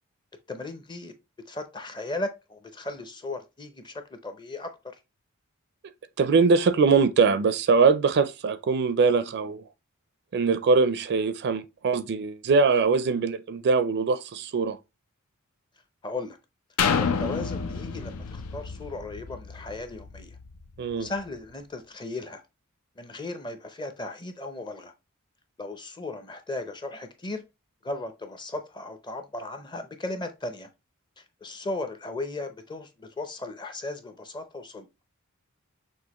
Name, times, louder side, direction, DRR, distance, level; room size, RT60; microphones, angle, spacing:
voice 1, 0.5-1.1 1.5-4.7 16.0-16.4 16.9-20.4 20.9-22.4 23.0-24.9 25.6-27.4 27.8-30.7 31.2-34.9, left 2 dB, 20° left, 0.6 m, -36 dB
voice 2, 6.2-9.6 10.3-14.8 20.8-21.1, right 4 dB, 50° right, 0.4 m, -22 dB
sound 1, 16.8-20.6 21.1-21.2, left 6 dB, 90° left, 0.6 m, -29 dB
6.2 x 2.5 x 2.9 m
head